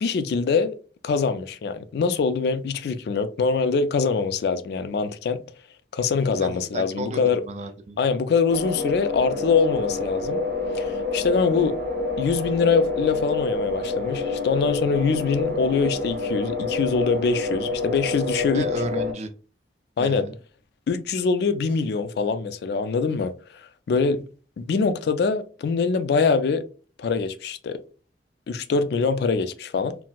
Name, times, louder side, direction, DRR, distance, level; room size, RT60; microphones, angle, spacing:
voice 1, 0.0-0.7 1.0-5.4 5.9-7.4 8.0-10.4 10.7-11.8 12.2-18.7 20.0-20.2 20.9-23.3 23.9-24.2 24.6-26.6 27.0-27.8 28.5-30.0, left 5 dB, 65° left, 0.3 m, -23 dB
voice 2, 6.4-8.0 18.5-19.3 20.0-20.3, right 2 dB, 40° right, 0.4 m, -33 dB
sound 1, 8.5-19.1, left 3 dB, 85° right, 1.3 m, -28 dB
4.0 x 2.0 x 2.2 m
head